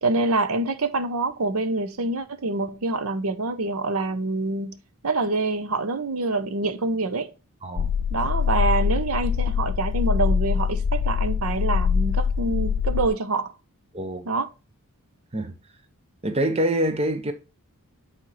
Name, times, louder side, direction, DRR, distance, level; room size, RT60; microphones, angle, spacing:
voice 1, 0.0-4.8 5.0-7.3 8.1-13.5 14.2-14.5, right 3 dB, 70° right, 0.7 m, -26 dB
voice 2, 7.6-7.9 13.9-14.3 15.3-15.5 16.2-17.3, right 1 dB, 25° right, 0.7 m, -25 dB
sound 1, 7.8-13.1, left 6 dB, 85° left, 0.4 m, -24 dB
8.4 x 4.3 x 3.2 m
head